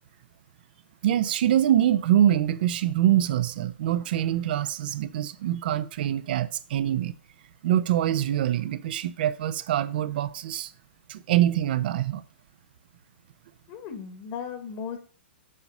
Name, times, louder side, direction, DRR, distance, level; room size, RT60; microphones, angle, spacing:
voice 1, 1.0-7.1 7.6-10.7 11.1-12.2, right 11 dB, 55° right, 0.6 m, -24 dB
voice 2, 13.7-15.0, left 7 dB, 40° left, 1.3 m, -36 dB
7.4 x 4.0 x 5.4 m
hypercardioid pair, 120°, 6 cm